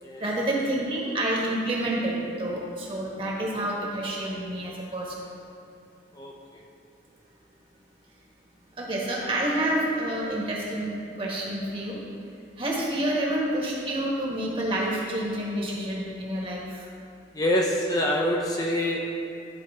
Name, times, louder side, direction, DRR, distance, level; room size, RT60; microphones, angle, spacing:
voice 1, 0.2-5.2 8.8-12.0 12.6-16.8, right 1 dB, 30° right, -4 dB, 1.4 m, -28 dB
voice 2, 6.1-6.6 17.3-19.0, left 1 dB, 20° left, -2 dB, 0.5 m, -26 dB
11.0 x 4.5 x 3.6 m, 2.6 s
head